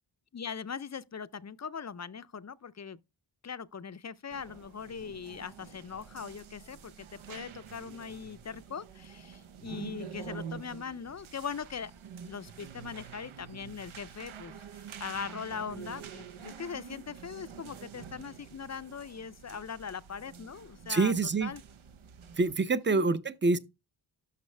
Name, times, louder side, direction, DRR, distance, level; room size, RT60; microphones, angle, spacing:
voice 1, 0.3-3.0 3.4-11.9 12.3-21.1 21.4-21.6 22.7-23.1, left 6 dB, 35° left, 0.4 m, -41 dB
sound 1, 4.3-22.6, right 8 dB, 90° right, 0.8 m, -47 dB
voice 2, 20.9-21.5 22.4-23.6, right 3 dB, 25° right, 0.5 m, -26 dB
12.5 x 5.5 x 3.3 m
wide cardioid pair, 105°, 47 cm